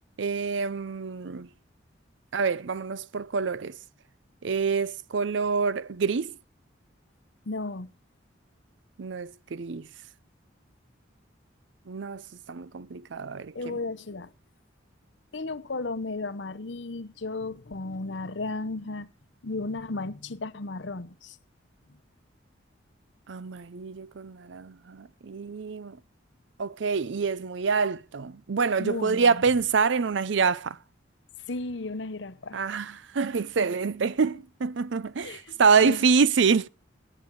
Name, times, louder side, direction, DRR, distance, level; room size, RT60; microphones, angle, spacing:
voice 1, 0.2-1.5 2.3-3.8 4.4-6.4 9.0-9.9 11.9-13.8 23.3-26.0 26.6-30.8 32.5-36.7, right 5 dB, 65° right, 0.5 m, -26 dB
voice 2, 7.5-7.9 13.5-14.3 15.3-19.1 19.4-21.4 28.8-29.4 31.5-32.7 35.2-35.4 35.8-36.0, left 3 dB, 65° left, 0.9 m, -34 dB
16.5 x 8.7 x 4.7 m
head